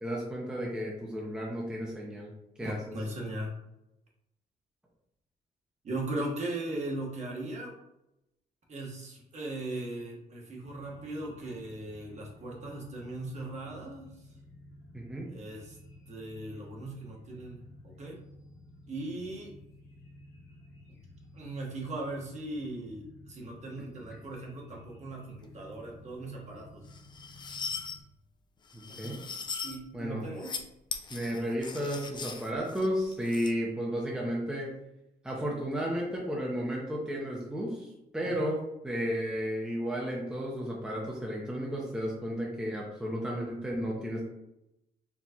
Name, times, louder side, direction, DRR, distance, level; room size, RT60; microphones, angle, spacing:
voice 1, 0.0-2.3 2.6-2.9 14.9-15.3 28.7-29.2 29.9-30.2 31.1-34.7 35.2-37.9 38.1-44.2, equal, 5° right, -3 dB, 0.7 m, -33 dB
voice 2, 2.6-3.5 5.8-7.7 8.7-14.1 15.3-15.8 16.1-17.6 18.0-18.2 18.9-19.5 21.3-26.8 28.9-29.2 29.6-30.5 38.2-38.4, right 2 dB, 45° right, -2 dB, 1.2 m, -38 dB
sound 1, 10.6-28.0, left 1 dB, 75° left, 1.0 m, -53 dB
sound 2, 26.9-28.0 28.7-29.8 30.3-30.6 30.9-33.5, left 5 dB, 25° left, 0.4 m, -39 dB
4.6 x 3.2 x 2.8 m, 0.87 s
cardioid pair, 135°, 17 cm